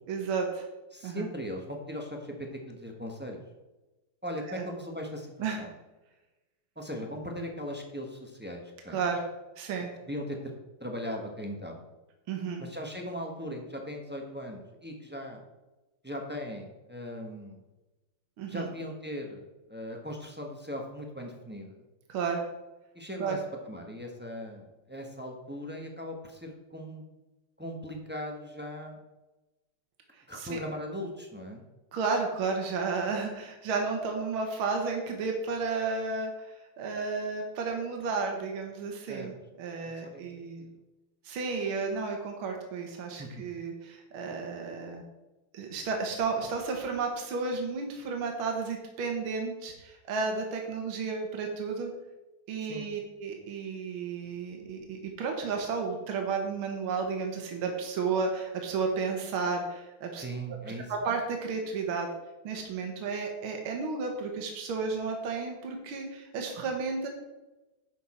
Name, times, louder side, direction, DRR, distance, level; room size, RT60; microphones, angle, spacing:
voice 1, 0.1-0.7 1.0-1.3 4.5-4.7 5.4-5.6 8.9-9.3 9.6-9.9 12.3-12.6 18.4-18.7 22.1-22.4 23.2-23.4 30.1-30.6 31.9-40.7 41.2-45.0 45.5-51.9 52.5-60.2 60.9-62.1 62.4-67.1, right 4 dB, 75° right, 2 dB, 2.0 m, -32 dB
voice 2, 0.9-3.4 4.2-5.7 6.8-9.0 10.1-10.5 10.8-11.8 12.6-15.4 16.0-17.6 18.5-19.4 19.7-21.8 22.9-23.4 23.7-27.1 27.6-29.0 30.3-31.7 39.1-39.3 39.8-40.2 40.6-40.7 43.2-43.4 52.6-52.9 60.2-60.9, equal, 10° right, 1 dB, 0.6 m, -39 dB
11.0 x 6.3 x 4.3 m, 1.1 s
omnidirectional pair, 2.4 m